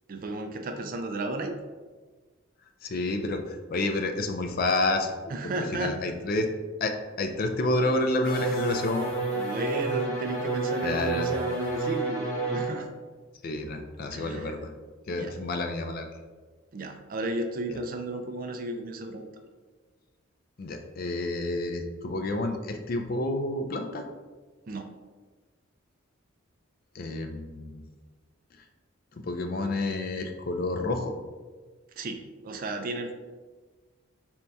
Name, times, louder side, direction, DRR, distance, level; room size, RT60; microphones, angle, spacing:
voice 1, 0.1-1.6 5.3-6.0 9.3-12.9 14.1-14.6 15.2-15.3 16.7-19.3 24.7-24.9 32.0-33.2, right 2 dB, 40° right, 6 dB, 0.3 m, -33 dB
voice 2, 2.8-5.1 5.7-6.5 6.8-9.1 10.8-11.3 13.4-14.7 15.1-16.1 20.6-24.0 26.9-27.8 29.1-31.1, left 2 dB, 45° left, 5 dB, 0.4 m, -29 dB
sound 1, 8.2-12.8, right 3 dB, 10° left, 1.3 m, -30 dB
4.3 x 2.6 x 3.4 m, 1.4 s
head